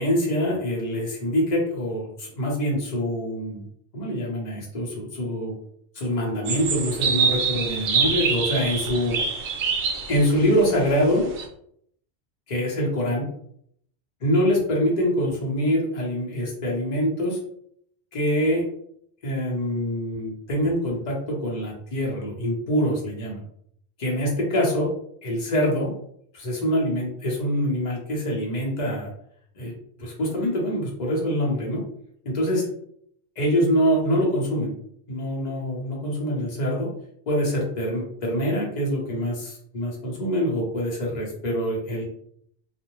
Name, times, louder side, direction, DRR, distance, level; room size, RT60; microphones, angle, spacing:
voice 1, 0.0-3.7 3.9-5.6 5.9-9.2 10.1-11.3 12.5-13.3 14.2-17.4 18.1-18.6 19.2-23.4 24.0-24.9 25.2-26.0 26.3-29.1 29.5-29.7 30.0-31.8 32.2-32.7 33.4-34.7 35.1-36.9 37.3-42.0, equal, 45° left, -3 dB, 0.9 m, -25 dB
sound 1, 6.4-11.5, right 5 dB, 85° right, 0.9 m, -25 dB
2.5 x 2.0 x 3.0 m, 0.68 s
omnidirectional pair, 1.1 m